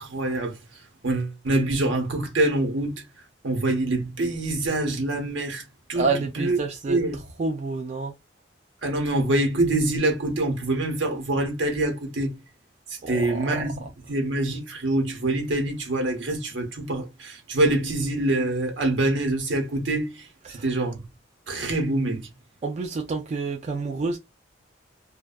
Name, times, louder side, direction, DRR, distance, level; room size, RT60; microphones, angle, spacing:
voice 1, 0.0-3.0 3.4-6.6 6.9-7.2 8.8-12.4 12.9-21.0 21.5-22.3, right 2 dB, 75° right, 0.9 m, -25 dB
voice 2, 5.9-7.0 7.4-8.1 13.0-13.6 20.5-20.6 22.6-24.2, right 3 dB, 35° right, 0.3 m, -28 dB
2.6 x 2.2 x 2.2 m
head